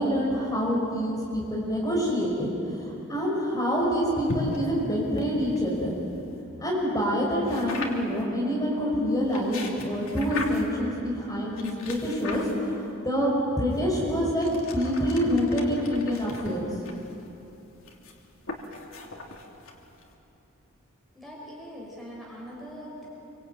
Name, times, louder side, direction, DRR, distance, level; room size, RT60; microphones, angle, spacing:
voice 1, 0.0-5.9 6.6-16.7, equal, 15° left, -4 dB, 5.8 m, -26 dB
sound 1, 4.2-6.4 7.4-8.2 9.1-10.8 11.6-12.9 13.7-20.1, left 2 dB, 75° left, 3.0 m, -39 dB
voice 2, 21.1-23.1, equal, ahead, -5 dB, 5.7 m, -42 dB
26.0 x 25.0 x 9.2 m, 2.8 s
head